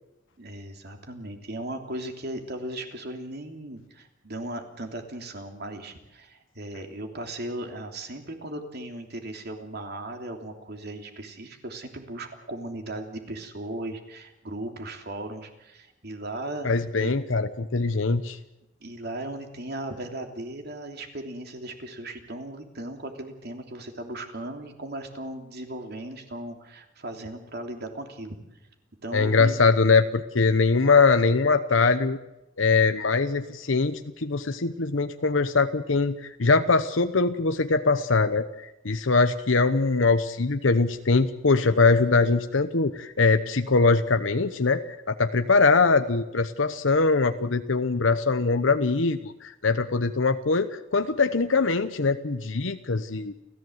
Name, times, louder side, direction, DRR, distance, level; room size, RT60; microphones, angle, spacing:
voice 1, 0.4-17.1 18.8-28.4 29.0-29.6, right 1 dB, 60° right, 4 dB, 3.1 m, -37 dB
voice 2, 16.6-18.4 29.1-32.2 32.6-38.5 38.8-53.3, left 4 dB, 85° left, 9 dB, 1.0 m, -22 dB
29.5 x 15.0 x 8.0 m, 0.92 s
head